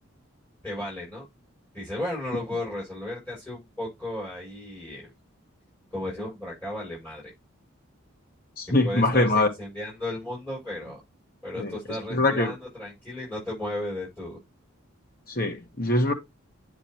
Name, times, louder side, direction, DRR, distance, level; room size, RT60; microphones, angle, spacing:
voice 1, 0.6-1.2 1.7-5.1 5.9-7.3 8.8-11.0 11.4-14.4, left 1 dB, 10° left, 6.2 m, -34 dB
voice 2, 8.6-9.5 11.6-11.7 12.1-12.5 15.3-16.1, left 2 dB, 45° left, 1.4 m, -23 dB
9.0 x 6.1 x 2.9 m
head